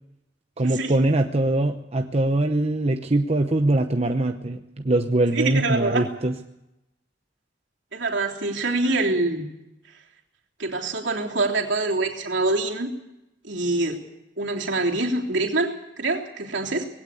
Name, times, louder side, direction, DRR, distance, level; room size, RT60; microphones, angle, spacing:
voice 1, 0.6-6.3, right 2 dB, 35° right, 6 dB, 0.8 m, -22 dB
voice 2, 5.3-6.0 7.9-9.4 10.6-12.9 13.4-14.0 14.4-16.9, right 2 dB, 70° right, 0 dB, 3.3 m, -25 dB
20.0 x 17.0 x 8.4 m, 0.91 s
head